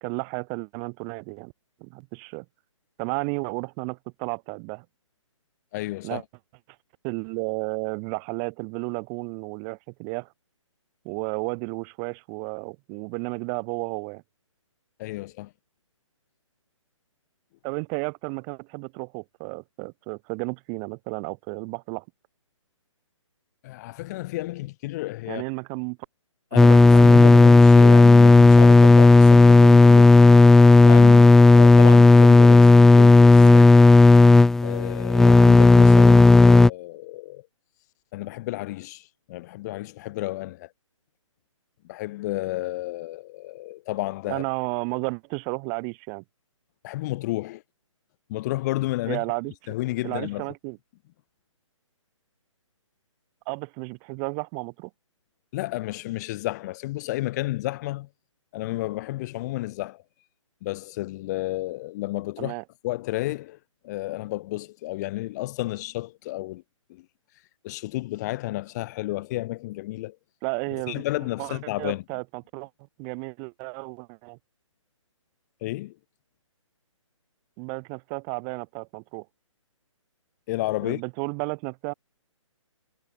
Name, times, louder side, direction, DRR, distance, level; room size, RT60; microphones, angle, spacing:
voice 1, 0.0-1.5 1.8-2.5 3.0-4.8 6.0-6.2 7.0-10.3 11.0-14.2 17.6-22.0 25.3-26.0 26.6-27.3 33.4-33.7 44.3-46.2 49.1-49.7 50.0-50.8 53.5-54.9 62.4-62.6 70.4-71.0 71.4-72.7 73.0-74.4 77.6-79.3 80.8-81.9, right 40 dB or more, 25° right, 2.4 m, -33 dB
voice 2, 5.7-6.2 15.0-15.5 23.6-25.4 26.5-30.1 30.8-33.6 34.6-37.5 38.1-40.7 41.8-44.4 46.8-47.6 48.3-49.2 49.7-50.5 55.5-58.1 58.5-60.0 60.6-62.5 62.8-63.6 63.8-66.6 66.9-67.1 67.6-70.2 70.7-72.0 75.6-76.0 80.5-81.0, left 18 dB, 30° left, 4.2 m, -31 dB
sound 1, 26.6-36.7, left 3 dB, ahead, 0.4 m, -12 dB
figure-of-eight pair, 135°, 17 cm